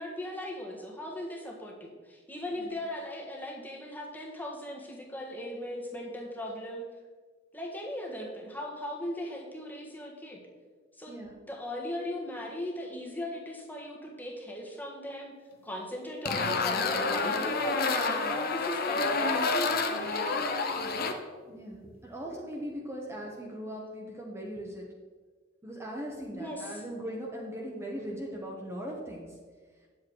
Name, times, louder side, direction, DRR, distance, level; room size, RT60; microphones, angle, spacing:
voice 1, 0.0-6.9 7.5-10.4 11.0-11.2 11.5-15.4 15.6-20.6 26.3-26.8, left 1 dB, 10° left, -1 dB, 1.6 m, -38 dB
sound 1, 16.2-21.1, left 4 dB, 50° left, 0.9 m, -29 dB
voice 2, 21.4-24.9 25.6-29.4 29.8-29.9, equal, 15° right, -3 dB, 1.1 m, -39 dB
9.4 x 7.7 x 4.6 m, 1.5 s
head